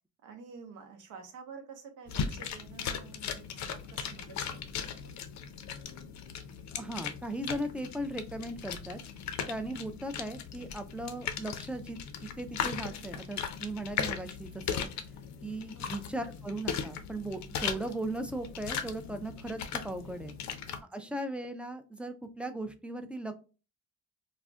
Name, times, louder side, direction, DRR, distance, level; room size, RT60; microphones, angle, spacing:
voice 1, 0.2-5.1 15.7-16.0 20.7-21.1, right 5 dB, 85° right, 5 dB, 0.7 m, -50 dB
sound 1, 2.1-20.8, left 7 dB, 70° left, 0.5 m, -38 dB
voice 2, 6.7-9.0 9.5-14.9 15.4-19.6 19.8-20.3 20.9-23.4, right 1 dB, 5° right, 7 dB, 0.3 m, -38 dB
2.4 x 2.1 x 3.4 m, 0.33 s
cardioid pair, 90°, 30 cm